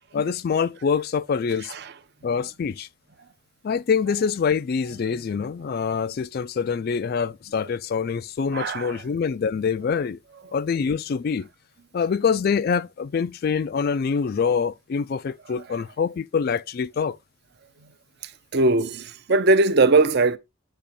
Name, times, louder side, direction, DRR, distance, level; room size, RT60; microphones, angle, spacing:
voice 1, 0.1-1.7 2.2-2.9 3.6-10.2 10.5-11.5 11.9-17.2, left 6 dB, 45° left, 0.3 m, -25 dB
voice 2, 8.5-9.0 17.8-17.9 18.2-20.4, right 3 dB, 50° right, 0.7 m, -21 dB
8.6 x 2.9 x 4.3 m
head